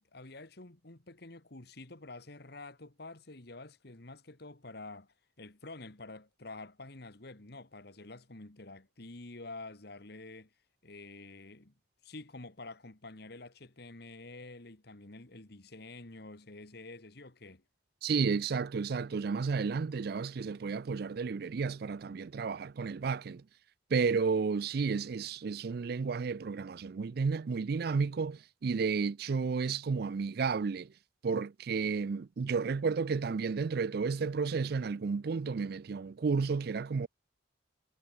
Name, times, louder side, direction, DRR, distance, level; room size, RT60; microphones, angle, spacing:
voice 1, 0.0-10.5 10.8-11.7 12.0-17.6, left 2 dB, 60° left, 1.9 m, -48 dB
voice 2, 18.0-23.4 23.9-30.9 31.2-37.1, right 5 dB, 55° right, 0.4 m, -32 dB
head